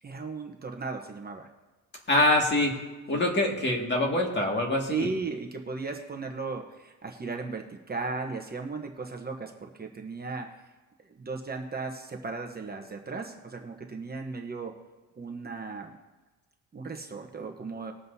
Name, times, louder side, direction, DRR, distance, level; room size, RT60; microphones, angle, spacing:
voice 1, 0.0-1.5 3.1-3.2 4.9-10.7 11.0-14.7 15.2-16.0 16.7-17.9, right 4 dB, 25° right, 3 dB, 1.0 m, -36 dB
voice 2, 2.1-2.8 3.1-5.1, left 1 dB, 30° left, 0 dB, 2.1 m, -24 dB
20.5 x 7.7 x 2.8 m, 1.2 s
cardioid pair, 115°, 35 cm